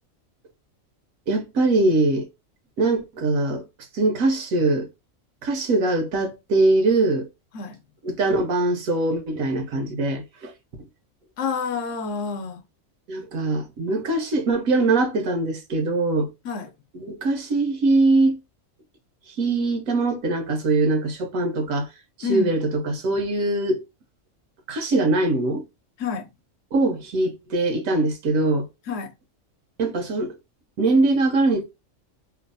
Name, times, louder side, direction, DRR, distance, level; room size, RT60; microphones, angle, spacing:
voice 1, 1.3-2.3 2.8-3.6 3.9-4.9 5.4-7.3 8.0-10.5 13.1-16.3 16.9-18.4 19.4-21.9 22.2-23.8 24.7-25.6 26.7-28.7 29.8-30.3 30.8-31.6, right 2 dB, 90° right, 1.3 m, -22 dB
voice 2, 11.4-12.6 16.4-16.7 22.2-22.6 26.0-26.3 28.9-29.1, left 5 dB, 70° left, 0.9 m, -28 dB
3.1 x 2.0 x 2.6 m
omnidirectional pair, 1.4 m